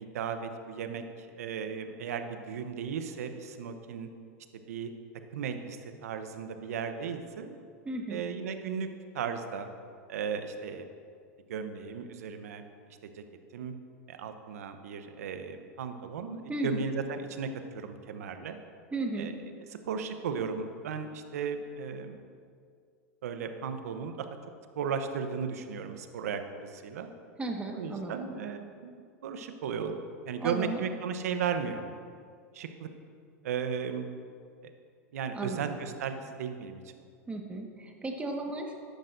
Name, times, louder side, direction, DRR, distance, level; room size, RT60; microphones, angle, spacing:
voice 1, 0.0-4.1 4.7-4.9 5.3-7.6 8.1-8.9 9.1-9.7 10.1-10.8 11.5-12.6 12.9-13.2 13.5-13.7 14.1-18.6 19.2-19.3 19.8-22.2 23.2-24.3 24.8-27.1 27.7-30.0 30.3-31.9 32.5-32.9 33.4-34.1 35.1-37.0, right 6 dB, 80° right, 8 dB, 0.9 m, -35 dB
voice 2, 7.8-8.2 16.5-16.8 18.9-19.3 27.4-28.3 30.4-30.8 35.3-35.8 37.3-38.7, right 2 dB, 15° right, 2 dB, 1.5 m, -35 dB
13.0 x 10.5 x 2.6 m, 2.2 s
hypercardioid pair, 100°, 8 cm